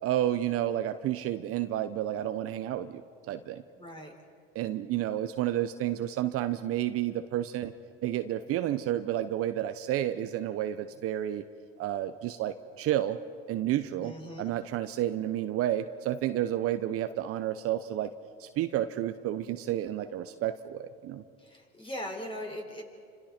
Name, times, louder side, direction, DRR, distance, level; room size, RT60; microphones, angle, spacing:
voice 1, 0.0-3.0 3.3-3.6 4.5-7.7 8.0-11.4 11.8-13.2 13.5-18.1 18.4-21.2, right 12 dB, 50° right, 9 dB, 1.0 m, -31 dB
voice 2, 3.7-4.1 14.0-14.5 21.4-22.8, equal, 15° left, 2 dB, 4.7 m, -40 dB
29.0 x 26.0 x 4.4 m, 2.2 s
hypercardioid pair, 95°, 30 cm